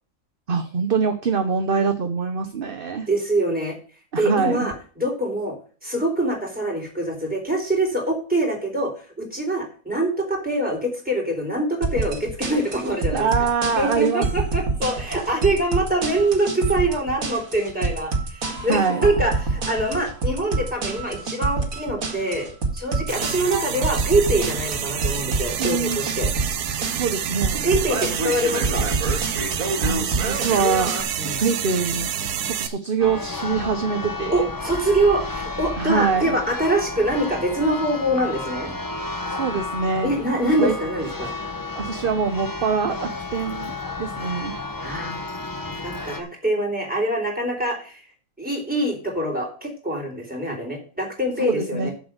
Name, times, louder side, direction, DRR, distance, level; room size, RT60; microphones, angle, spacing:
voice 1, 0.5-3.1 4.1-4.7 13.1-14.3 18.7-19.1 25.6-26.0 26.9-27.7 29.8-30.9 31.2-32.1 32.4-34.5 35.8-36.3 39.3-40.1 40.6-40.8 41.7-43.7 44.0-44.5 45.9-46.1 51.4-51.9, right 5 dB, 45° right, 7 dB, 0.9 m, -24 dB
voice 2, 3.1-3.8 4.2-5.6 5.8-13.3 13.8-22.5 22.7-26.3 27.6-28.9 31.2-31.4 34.3-38.7 40.0-41.3 44.8-45.2 45.7-48.0 48.4-51.9, right 1 dB, 5° right, -1 dB, 3.7 m, -24 dB
sound 1, 11.8-31.0, right 3 dB, 60° right, 2.3 m, -27 dB
sound 2, 23.1-32.7, right 9 dB, 80° right, 1.4 m, -28 dB
Church bell, 33.0-46.2, left 3 dB, 15° left, 0.8 m, -32 dB
7.5 x 7.1 x 8.1 m, 0.39 s
omnidirectional pair, 1.7 m